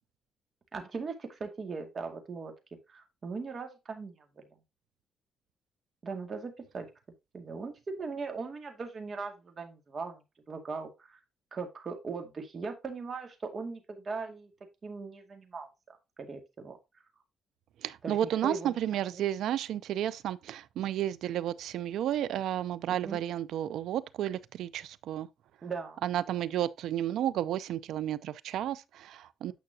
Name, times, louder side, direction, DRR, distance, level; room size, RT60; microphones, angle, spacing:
voice 1, 0.7-2.5 2.9-4.6 6.0-6.9 7.3-11.2 11.5-14.5 14.8-16.8 18.0-19.3 22.9-23.2 25.6-26.0, right 4 dB, 40° right, 2.1 m, -39 dB
voice 2, 17.8-25.3 26.0-29.5, right 11 dB, 80° right, 0.5 m, -32 dB
9.2 x 5.8 x 2.8 m
cardioid pair, 90°, 0 cm